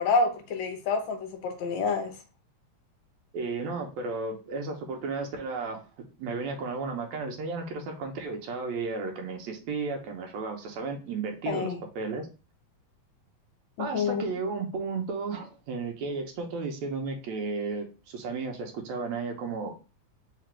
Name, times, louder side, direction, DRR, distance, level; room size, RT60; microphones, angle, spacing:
voice 1, 0.0-2.1 11.5-11.8 13.8-14.3, left 4 dB, 75° left, 5 dB, 1.9 m, -28 dB
voice 2, 3.3-5.8 6.2-12.3 13.8-19.7, right 4 dB, 75° right, 2 dB, 2.0 m, -33 dB
4.9 x 2.2 x 4.3 m, 0.32 s
omnidirectional pair, 3.3 m